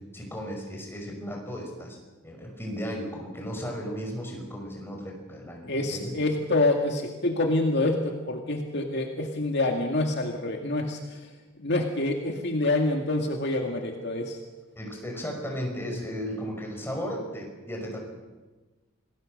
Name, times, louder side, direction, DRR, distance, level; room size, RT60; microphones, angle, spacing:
voice 1, 0.1-2.0 2.2-6.1 14.8-18.0, equal, 10° left, 1 dB, 5.7 m, -35 dB
voice 2, 5.7-11.3 11.6-14.4, left 2 dB, 55° left, 2 dB, 2.1 m, -27 dB
27.5 x 19.5 x 6.6 m, 1.2 s
head